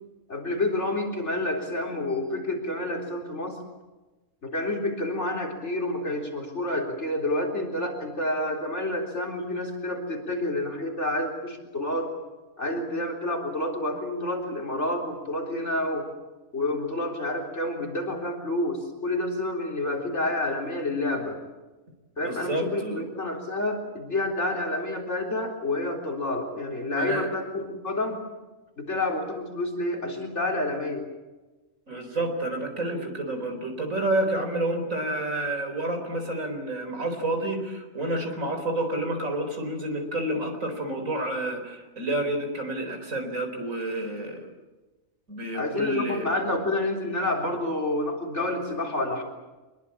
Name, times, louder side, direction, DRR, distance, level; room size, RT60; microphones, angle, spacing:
voice 1, 0.3-3.6 4.4-12.1 12.6-16.1 16.5-21.4 22.2-28.2 28.8-31.1 45.5-49.2, left 1 dB, 55° left, 1 dB, 4.1 m, -29 dB
voice 2, 22.2-23.0 26.9-27.3 31.9-44.5 45.3-46.3, right 1 dB, 75° right, 6 dB, 4.8 m, -29 dB
25.0 x 22.0 x 8.6 m, 1.2 s
omnidirectional pair, 1.4 m